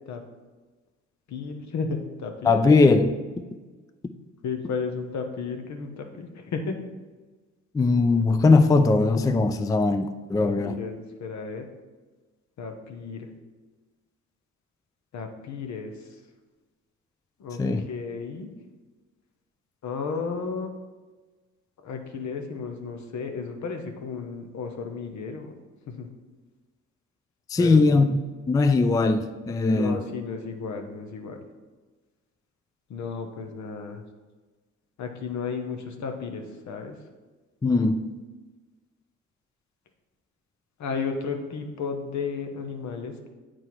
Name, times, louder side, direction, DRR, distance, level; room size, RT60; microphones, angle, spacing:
voice 1, 1.3-2.5 4.4-6.8 10.4-11.7 12.6-13.3 15.1-15.9 17.4-17.6 17.9-18.5 19.8-20.7 21.8-25.5 25.9-26.1 27.6-28.1 29.7-31.4 32.9-34.0 35.0-37.0 40.8-43.3, left 5 dB, 65° left, 5 dB, 1.0 m, -33 dB
voice 2, 2.4-3.2 7.7-10.8 17.6-17.8 27.5-28.1 28.5-30.0 37.6-38.1, left 3 dB, 10° left, 9 dB, 0.3 m, -20 dB
8.1 x 4.4 x 4.6 m, 1.3 s
cardioid pair, 90°, 30 cm